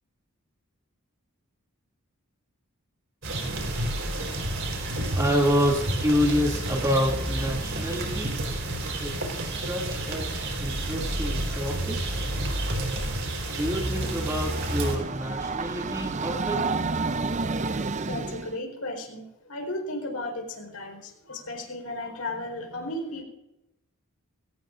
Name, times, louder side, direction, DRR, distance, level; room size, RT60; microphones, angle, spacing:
sound 1, 3.2-15.0, right 1 dB, 55° right, 4.4 m, -30 dB
voice 1, 5.2-8.3 9.0-12.0 13.5-16.7, equal, 15° right, -1 dB, 2.5 m, -28 dB
Train, 13.7-18.6, right 4 dB, 30° right, 0.6 m, -30 dB
voice 2, 18.1-23.2, left 1 dB, 75° left, 3 dB, 4.5 m, -35 dB
23.0 x 18.0 x 2.6 m, 0.94 s
head